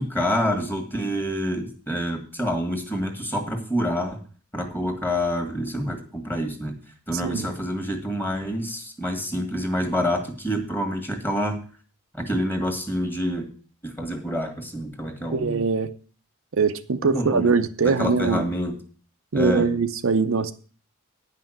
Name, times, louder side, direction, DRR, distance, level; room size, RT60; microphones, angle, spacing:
voice 1, 0.0-4.2 4.5-6.8 7.1-11.6 12.1-13.5 13.8-15.6 17.0-17.5 17.8-18.8 19.3-19.7, equal, 10° left, 3 dB, 1.7 m, -27 dB
voice 2, 15.3-15.9 16.5-18.5 19.3-20.5, right 4 dB, 65° right, 8 dB, 0.6 m, -22 dB
9.8 x 5.8 x 7.5 m, 0.41 s
head